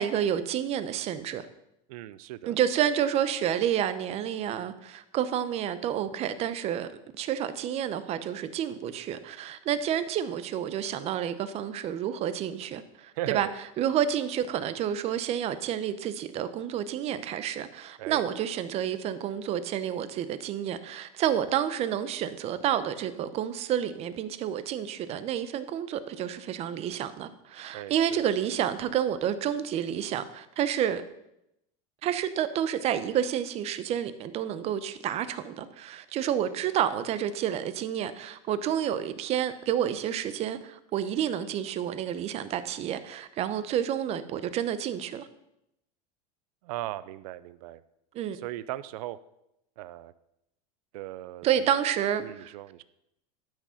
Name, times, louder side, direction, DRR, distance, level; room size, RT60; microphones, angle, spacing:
voice 1, 0.0-1.5 2.5-6.9 7.2-13.5 13.8-31.0 32.0-45.3 48.1-48.4 51.4-52.5, right 10 dB, 35° right, 13 dB, 0.7 m, -29 dB
voice 2, 1.9-2.6 13.1-13.5 18.0-18.2 27.7-28.3 46.6-47.8 48.4-49.2 49.8-50.1 50.9-51.5 52.2-52.8, right 15 dB, 75° right, 16 dB, 0.5 m, -37 dB
12.0 x 6.2 x 5.7 m, 0.84 s
supercardioid pair, 150°, 19 cm